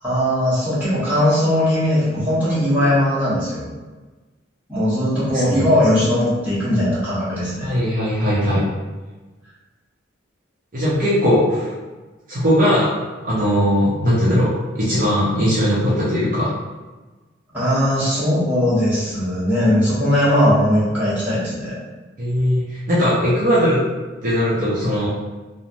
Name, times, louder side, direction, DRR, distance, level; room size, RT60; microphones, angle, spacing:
voice 1, 0.0-3.6 4.7-7.7 17.5-21.8, equal, 10° right, -11 dB, 1.1 m, -19 dB
voice 2, 5.2-5.7 7.6-8.7 10.7-11.7 12.3-12.9 13.2-16.5 22.2-23.8 24.2-25.1, equal, 40° right, -9 dB, 0.6 m, -19 dB
3.0 x 2.0 x 2.5 m, 1.2 s
head